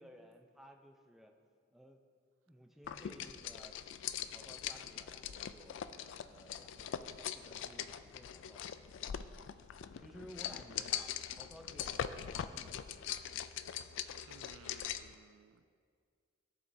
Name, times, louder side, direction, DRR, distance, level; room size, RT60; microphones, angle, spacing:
voice 1, 0.0-1.3 1.7-2.0 2.5-3.8 4.3-5.8 6.3-8.7 9.0-9.2 9.9-12.9, equal, ahead, 2 dB, 0.5 m, -57 dB
sound 1, 2.8-15.1, left 9 dB, 65° left, 0.3 m, -42 dB
voice 2, 14.3-15.7, right 6 dB, 75° right, 12 dB, 0.3 m, -59 dB
15.0 x 7.0 x 2.7 m, 2.1 s
head